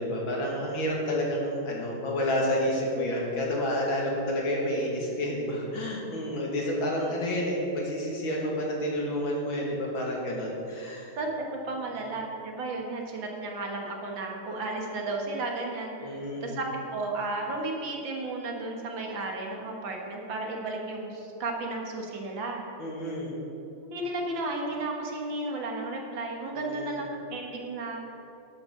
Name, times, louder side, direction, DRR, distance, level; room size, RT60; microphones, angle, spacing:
voice 1, 0.0-11.1 11.9-12.1 16.0-16.6 22.8-23.4 26.5-27.0, left 1 dB, 75° left, -2 dB, 2.7 m, -30 dB
voice 2, 11.2-22.6 23.9-27.0 27.3-28.0, right 2 dB, 70° right, 0 dB, 2.1 m, -33 dB
12.0 x 11.5 x 3.8 m, 2.8 s
omnidirectional pair, 2.2 m